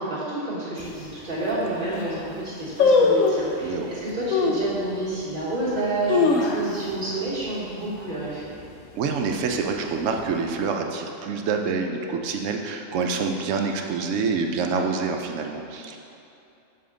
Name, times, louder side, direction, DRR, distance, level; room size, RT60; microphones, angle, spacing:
voice 1, 0.0-8.5, right 2 dB, 40° right, -8 dB, 1.7 m, -29 dB
sound 1, 0.8-0.9 1.5-1.6 1.8-2.2 2.8-3.5 4.3-4.7 5.2-5.3 5.9-7.0 7.3-7.4 7.7-8.1 8.5-8.8 9.5-10.2 10.5-10.6, left 4 dB, 85° left, 1.0 m, -21 dB
voice 2, 9.0-16.0, right 5 dB, 75° right, 3 dB, 0.9 m, -26 dB
7.0 x 4.2 x 3.8 m, 2.7 s
omnidirectional pair, 1.4 m